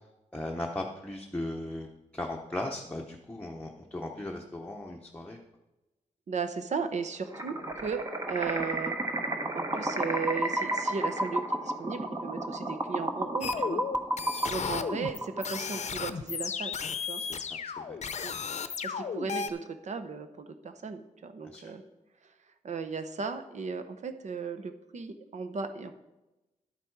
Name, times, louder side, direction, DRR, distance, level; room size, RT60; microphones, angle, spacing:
voice 1, 0.3-5.4 14.2-14.5 17.2-18.0 21.4-21.7, left 1 dB, 10° left, 0 dB, 0.8 m, -38 dB
voice 2, 6.3-8.0 8.3-8.9 9.5-13.8 14.5-16.8 17.1-17.2 18.2-18.4 18.7-21.8 22.2-22.3 22.6-25.9, right 5 dB, 60° right, 9 dB, 0.9 m, -36 dB
sound 1, 7.3-15.8, right 1 dB, 25° right, 1.1 m, -32 dB
sound 2, 13.4-19.5, left 6 dB, 60° left, 0.6 m, -34 dB
11.0 x 8.3 x 4.7 m, 1.0 s
wide cardioid pair, 125°, 13 cm